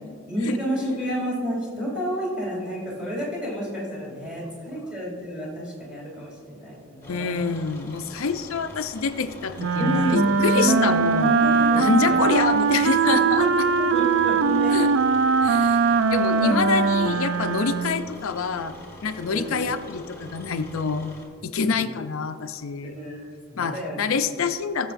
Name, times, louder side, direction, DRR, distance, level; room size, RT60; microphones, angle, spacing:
voice 1, 0.3-7.5 9.8-10.3 10.5-10.9 11.4-12.2 13.0-13.5 13.8-14.7 16.4-16.6 19.2-19.5 21.7-21.9 22.8-24.0, equal, 5° right, -5 dB, 2.8 m, -30 dB
sound 1, 7.0-21.3, equal, 15° left, 1.7 m, -44 dB
voice 2, 7.1-11.4 11.7-13.5 14.7-14.9 15.4-15.8 16.1-18.7 19.0-21.1 21.4-22.9 23.6-24.9, left 5 dB, 75° left, 8 dB, 0.5 m, -26 dB
Wind instrument woodwind instrument, 9.6-18.1, right 5 dB, 60° right, 0.3 m, -21 dB
19.5 x 6.8 x 2.6 m, 2.3 s
head